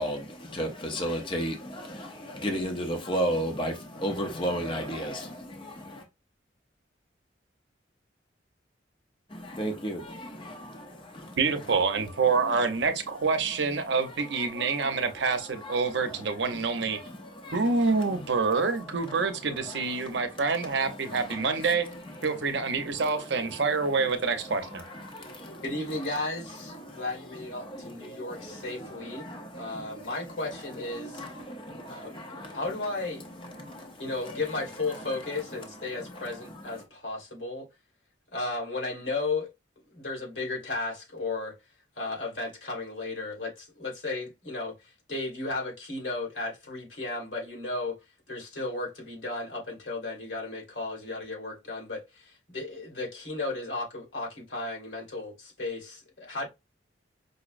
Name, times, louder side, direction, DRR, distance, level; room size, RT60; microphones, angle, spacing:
voice 1, 0.0-6.0 9.3-11.4 12.5-12.9 13.6-26.1 26.7-32.8 33.4-34.4 34.9-35.4 35.9-36.8, equal, 25° left, 0.6 m, -37 dB
voice 2, 11.4-17.0 17.5-21.9 22.2-24.8, right 4 dB, 70° right, 0.7 m, -27 dB
voice 3, 25.6-31.2 31.9-33.3 34.0-37.7 38.3-39.5 39.9-41.6 42.0-48.0 48.3-56.5, left 2 dB, 85° left, 2.2 m, -34 dB
5.2 x 2.0 x 2.5 m
head